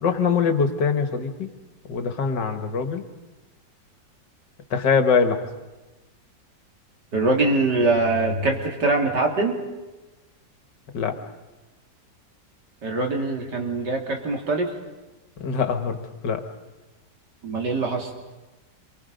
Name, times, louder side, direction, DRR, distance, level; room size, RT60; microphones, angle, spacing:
voice 1, 0.0-1.5 1.9-3.1 4.7-5.4 10.9-11.1 15.4-16.0 16.2-16.4, left 5 dB, 75° left, 7 dB, 2.1 m, -23 dB
voice 2, 7.1-9.6 12.8-14.7 17.4-18.1, right 2 dB, 65° right, 1 dB, 3.4 m, -23 dB
27.5 x 23.5 x 5.2 m, 1.1 s
omnidirectional pair, 2.0 m